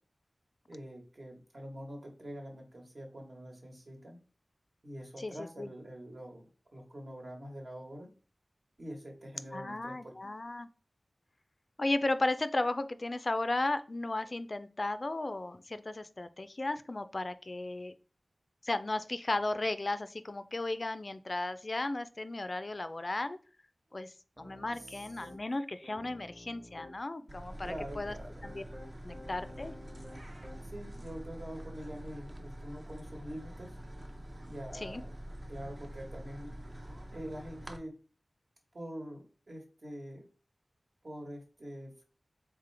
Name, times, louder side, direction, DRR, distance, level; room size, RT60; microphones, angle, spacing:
voice 1, 0.7-4.2 4.8-6.5 6.7-8.1 8.8-10.1 24.7-25.1 27.6-28.4 30.6-33.7 34.5-35.1 35.5-36.5 37.1-37.9 38.7-40.3 41.0-42.0, equal, 60° right, 1 dB, 1.3 m, -45 dB
voice 2, 5.2-5.7 9.5-10.7 11.8-17.9 18.6-23.4 23.9-28.1 28.4-28.6 29.0-29.7 34.8-35.0, left 2 dB, 50° left, 11 dB, 0.3 m, -35 dB
Piano, 24.4-25.4 25.8-27.0 27.6-30.8, left 1 dB, 25° right, 0.9 m, -52 dB
sound 1, 27.3-37.8, equal, 40° right, 0.6 m, -46 dB
3.7 x 3.6 x 3.3 m, 0.38 s
wide cardioid pair, 55°, 0 cm